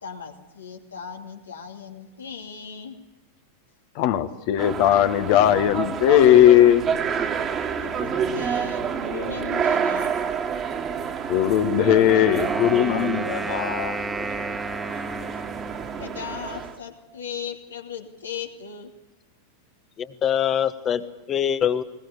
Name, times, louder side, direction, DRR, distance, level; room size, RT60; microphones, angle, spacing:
voice 1, 0.0-3.0 7.8-10.1 14.9-15.2 16.0-18.9, left 7 dB, 75° left, 3 dB, 2.7 m, -37 dB
voice 2, 3.9-6.8 11.3-14.0, left 11 dB, 50° left, 9 dB, 1.6 m, -18 dB
sound 1, 4.6-16.8, right 7 dB, 30° right, 2.1 m, -28 dB
Wind instrument woodwind instrument, 12.1-16.4, right 2 dB, 10° right, 1.8 m, -33 dB
voice 3, 20.0-21.8, left 9 dB, 30° left, 9 dB, 1.4 m, -24 dB
20.5 x 19.5 x 8.3 m, 1.0 s
figure-of-eight pair, 90°, 0 cm